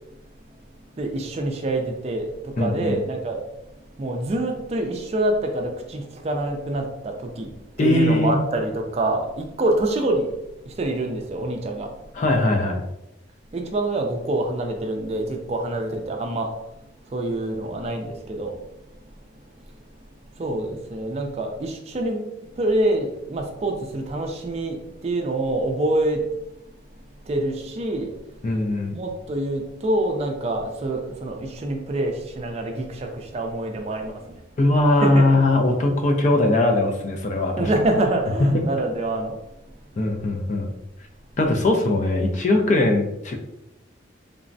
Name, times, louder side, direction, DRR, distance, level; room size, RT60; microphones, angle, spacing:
voice 1, 1.0-3.4 4.0-7.5 7.8-10.4 10.6-11.9 13.5-16.5 17.1-18.6 20.4-22.3 22.6-26.2 27.2-28.2 28.9-34.4 35.0-35.3 37.6-39.4, right 1 dB, 35° right, 3 dB, 0.3 m, -26 dB
voice 2, 2.6-3.0 7.8-8.4 12.2-12.8 28.4-29.0 34.6-37.7 38.5-38.6 40.0-40.7 41.4-43.4, left 2 dB, 40° left, 3 dB, 0.4 m, -20 dB
3.3 x 2.0 x 2.5 m, 0.90 s
head